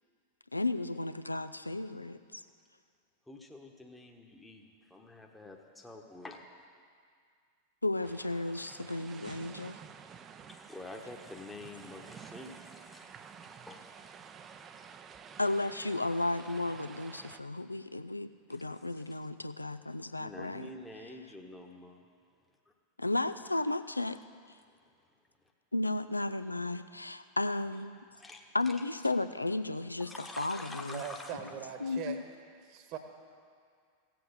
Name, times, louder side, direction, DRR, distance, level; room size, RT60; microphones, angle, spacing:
voice 1, 0.5-2.4 7.8-9.8 15.4-20.7 23.0-24.2 25.7-27.9 28.5-30.1 30.4-31.0 31.8-32.2, left 2 dB, 85° left, 12 dB, 0.4 m, -34 dB
voice 2, 3.3-6.5 10.5-15.4 18.5-18.7 19.0-19.2 20.2-22.0 28.1-28.8 30.0-31.4, left 2 dB, 5° left, 2 dB, 1.1 m, -48 dB
sound 1, 8.0-17.4, right 7 dB, 25° right, 0.6 m, -51 dB
voice 3, 30.9-32.2 32.6-33.0, right 9 dB, 40° right, 7 dB, 1.2 m, -41 dB
16.0 x 7.8 x 6.9 m, 2.2 s
figure-of-eight pair, 90°, 0 cm